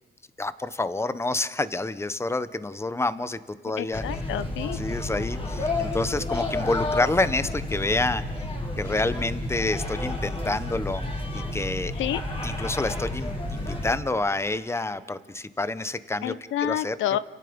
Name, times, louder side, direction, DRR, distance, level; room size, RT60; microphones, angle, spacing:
voice 1, 0.4-4.0 4.7-8.2 8.8-11.0 11.3-11.9 12.4-16.3 16.6-16.9, left 2 dB, 15° left, 13 dB, 1.0 m, -28 dB
voice 2, 3.8-4.8 12.0-12.2 16.2-17.2, left 11 dB, 80° left, 15 dB, 0.7 m, -28 dB
sound 1, 3.9-13.9, left 2 dB, 30° left, 4.5 m, -31 dB
29.5 x 17.0 x 5.3 m, 1.2 s
cardioid pair, 90°, 20 cm